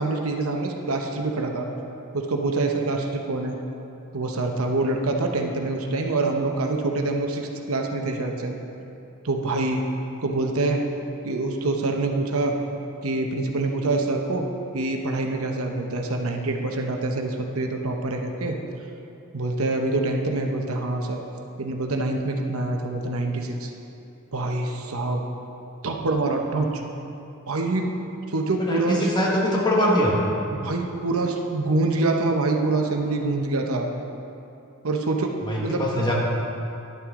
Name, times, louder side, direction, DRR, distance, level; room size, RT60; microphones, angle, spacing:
voice 1, 0.0-1.7 2.1-3.6 4.1-8.5 9.2-9.8 10.2-10.8 11.2-12.6 13.0-14.5 14.7-18.6 19.3-21.2 21.6-23.7 24.3-25.2 25.8-26.8 27.5-27.9 28.3-29.1 30.5-33.9 34.8-35.8, right 2 dB, 80° right, 2 dB, 0.9 m, -25 dB
voice 2, 28.6-30.2 35.4-36.1, equal, 20° left, -3 dB, 1.5 m, -22 dB
11.0 x 9.1 x 3.7 m, 2.8 s
head